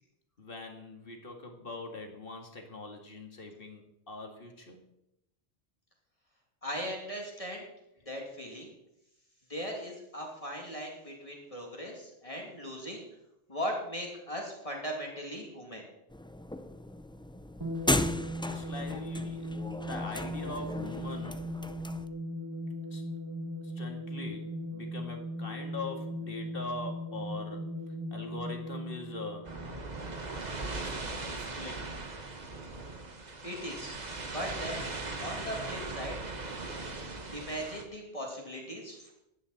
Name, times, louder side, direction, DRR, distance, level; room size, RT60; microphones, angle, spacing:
voice 1, 0.4-4.8 7.3-7.4 18.4-21.5 22.9-23.0 23.6-29.5 30.7-31.9, left 2 dB, 60° left, 3 dB, 2.3 m, -42 dB
voice 2, 6.6-7.6 8.1-8.7 9.5-13.0 13.5-15.9 33.4-34.9 35.2-36.2 37.3-39.1, equal, 35° left, -1 dB, 2.6 m, -38 dB
sound 1, 16.1-22.1, left 1 dB, 10° left, 0.3 m, -35 dB
sound 2, 17.6-30.4, left 1 dB, 20° right, 2.3 m, -38 dB
sound 3, 29.4-37.8, right 3 dB, 45° right, 1.4 m, -39 dB
16.0 x 11.0 x 4.2 m, 0.84 s
omnidirectional pair, 1.1 m